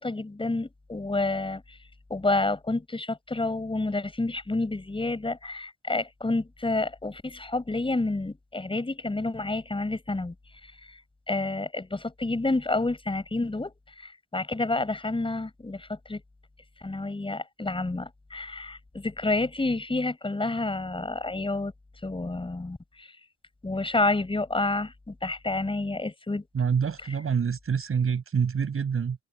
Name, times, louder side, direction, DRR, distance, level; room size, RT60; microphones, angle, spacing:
voice 1, 0.0-1.6 2.1-10.3 11.3-16.2 16.8-21.7 22.0-23.1 23.6-26.4, left 2 dB, 15° left, 6.3 m, -29 dB
voice 2, 26.5-29.2, right 6 dB, 45° right, 7.5 m, -26 dB
cardioid pair, 90°, 30 cm